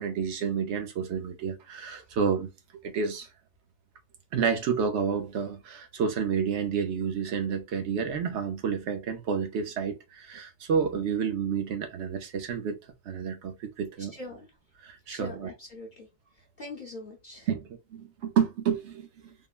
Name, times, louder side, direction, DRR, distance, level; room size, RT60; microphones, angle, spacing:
voice 1, 0.0-2.5 2.8-3.3 4.3-12.8 13.1-14.1 14.8-15.5 17.5-19.3, right 6 dB, 65° right, 0.9 m, -30 dB
voice 2, 14.1-14.5 15.1-16.1 16.6-17.5, left 2 dB, 45° left, 0.8 m, -42 dB
3.7 x 2.1 x 2.3 m
omnidirectional pair, 1.3 m